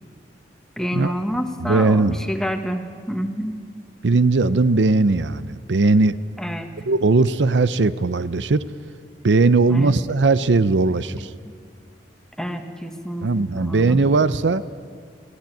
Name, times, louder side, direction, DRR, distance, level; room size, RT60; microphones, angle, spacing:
voice 1, 0.8-3.6 6.4-6.7 9.7-9.9 12.4-13.3 13.5-14.0, equal, 5° left, 6 dB, 1.5 m, -28 dB
voice 2, 1.6-2.2 4.0-6.2 6.9-8.6 9.2-11.3 13.2-14.6, right 3 dB, 90° right, 15 dB, 0.6 m, -18 dB
23.5 x 16.0 x 9.2 m, 2.1 s
head